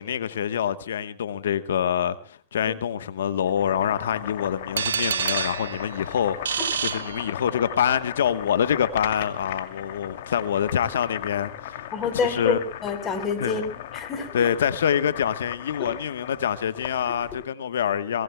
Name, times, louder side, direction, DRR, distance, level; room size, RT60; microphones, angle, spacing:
voice 1, 0.0-11.9 12.2-12.6 13.4-13.6 14.3-18.2, left 9 dB, 85° left, 1.1 m, -26 dB
Boiling, 3.4-17.5, left 11 dB, 70° left, 2.5 m, -37 dB
sound 1, 4.8-7.8, right 7 dB, 90° right, 1.4 m, -29 dB
voice 2, 11.9-13.6 13.9-14.5 15.8-15.9, left 5 dB, 30° left, 4.0 m, -27 dB
23.0 x 21.0 x 2.2 m
hypercardioid pair, 115°, 0 cm